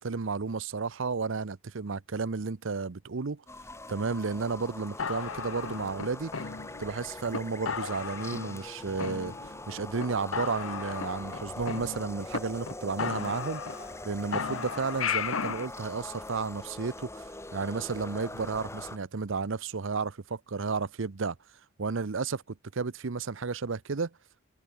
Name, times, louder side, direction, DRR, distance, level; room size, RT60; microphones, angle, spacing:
voice 1, 0.0-3.4 3.9-6.3 6.8-9.3 9.7-13.6 14.0-21.4 21.8-22.4 22.7-24.1, right 4 dB, 65° right, 0.7 m, -32 dB
sound 1, 3.5-19.0, left 2 dB, 15° left, 2.9 m, -42 dB
sound 2, 5.0-6.9 7.3-7.4 7.7-8.7 9.0-9.7 10.0-10.1 10.3-12.4 12.7-12.8 13.0-14.0 14.3-15.7, left 6 dB, 75° left, 1.0 m, -35 dB
head